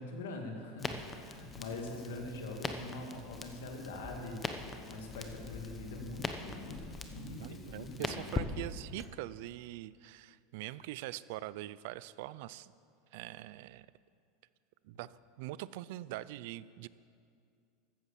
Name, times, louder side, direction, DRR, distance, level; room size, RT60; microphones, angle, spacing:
voice 1, 0.0-8.4, left 2 dB, 90° left, 2 dB, 2.3 m, -43 dB
Crackle, 0.8-9.1, left 4 dB, 20° left, 0.9 m, -42 dB
sound 1, 2.0-7.4, left 1 dB, 40° left, 2.4 m, -57 dB
voice 2, 7.2-12.7 13.1-13.9 14.8-15.1 15.4-16.9, right 16 dB, 70° right, 18 dB, 0.4 m, -43 dB
14.0 x 8.2 x 7.1 m, 2.4 s
supercardioid pair, 130°, 0 cm